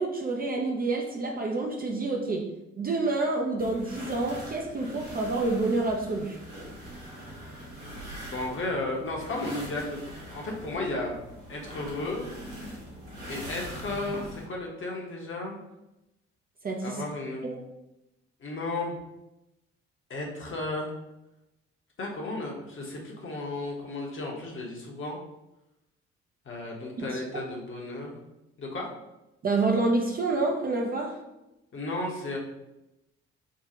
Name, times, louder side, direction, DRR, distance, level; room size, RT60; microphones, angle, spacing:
voice 1, 0.0-6.4 16.6-17.0 17.4-17.6 29.4-31.2, right 3 dB, 25° right, 1 dB, 0.5 m, -28 dB
sound 1, 3.6-14.5, equal, 75° right, 1.3 m, -42 dB
voice 2, 8.3-11.2 11.5-12.3 13.3-15.6 16.8-17.6 18.4-19.0 20.1-20.9 22.0-25.2 26.4-28.1 28.6-28.9 31.7-32.4, left 2 dB, 35° left, -1 dB, 0.9 m, -34 dB
3.7 x 2.3 x 2.8 m, 0.92 s
figure-of-eight pair, 40°, 33 cm